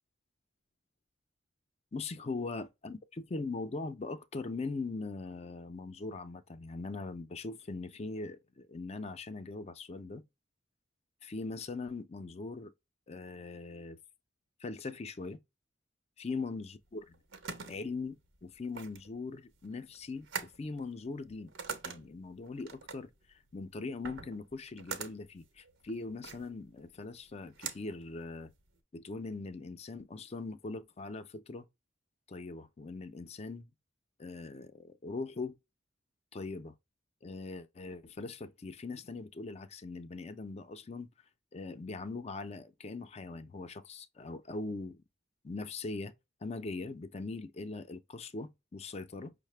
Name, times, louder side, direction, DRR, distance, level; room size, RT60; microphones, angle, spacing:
voice 1, 1.9-10.2 11.2-12.7 13.1-14.0 14.6-15.4 16.2-17.1 17.7-21.5 21.8-28.5 28.9-31.7 32.3-33.7 34.2-35.6 36.3-36.7 37.2-41.1 41.5-45.0 45.4-46.1 46.4-49.3, left 3 dB, 35° left, 0.4 m, -41 dB
sound 1, 16.9-28.8, right 6 dB, 90° right, 0.9 m, -45 dB
5.6 x 2.1 x 3.2 m
head